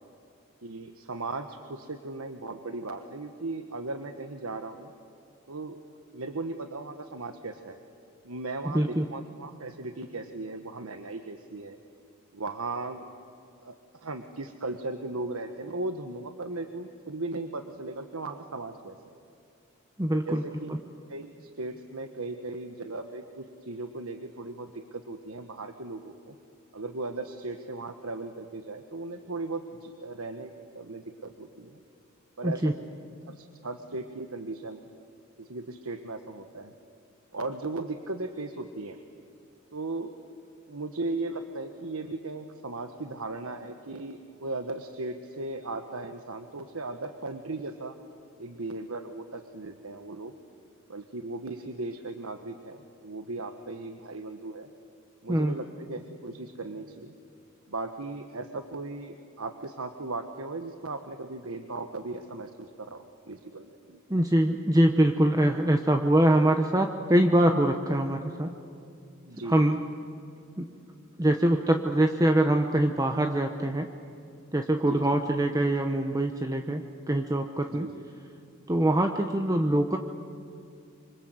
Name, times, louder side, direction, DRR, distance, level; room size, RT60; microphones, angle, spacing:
voice 1, 0.6-4.9 5.5-5.8 6.1-7.8 8.2-11.8 12.3-13.0 13.6-13.8 14.0-18.9 20.2-20.7 21.1-26.3 26.7-31.8 32.4-32.7 33.3-34.8 35.4-36.7 37.3-39.0 39.7-40.1 40.7-47.9 48.4-50.3 50.9-54.7 55.2-57.1 57.7-64.0 68.0-68.1 69.3-69.7 74.8-75.2 77.7-78.1, right 2 dB, 85° right, 7 dB, 1.3 m, -37 dB
voice 2, 8.6-9.1 20.0-20.4 32.4-32.7 55.3-55.5 64.1-68.5 69.4-69.8 70.6-70.7 71.2-73.9 74.5-77.9 78.7-80.0, right 1 dB, 15° right, 5 dB, 1.0 m, -24 dB
26.0 x 25.5 x 8.0 m, 2.5 s
head